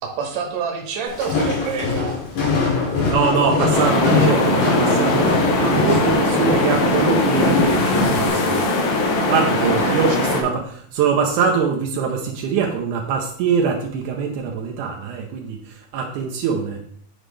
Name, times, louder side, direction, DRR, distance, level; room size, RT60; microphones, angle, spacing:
voice 1, 0.0-2.2 5.7-6.2 9.6-10.2, right 6 dB, 60° right, 2 dB, 2.0 m, -28 dB
Walk footsteps, 1.1-8.3, left 4 dB, 85° left, 4.7 m, -23 dB
voice 2, 3.1-8.7 9.3-16.8, right 6 dB, 80° right, 1 dB, 1.8 m, -23 dB
sound 1, 3.7-10.4, left 2 dB, 65° left, 1.9 m, -20 dB
9.3 x 5.1 x 3.3 m, 0.64 s
omnidirectional pair, 4.5 m